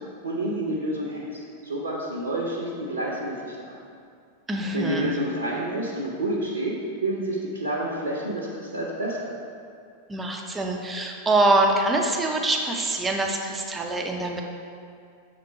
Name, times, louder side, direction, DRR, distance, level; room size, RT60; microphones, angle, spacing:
voice 1, 0.2-3.8 4.7-6.7 7.0-8.5 8.7-9.3, right 1 dB, 75° right, -4 dB, 0.7 m, -29 dB
voice 2, 4.5-5.1 10.1-14.4, right 2 dB, 15° right, 1 dB, 0.6 m, -24 dB
5.8 x 3.7 x 4.8 m, 2.4 s
figure-of-eight pair, 90°, 0 cm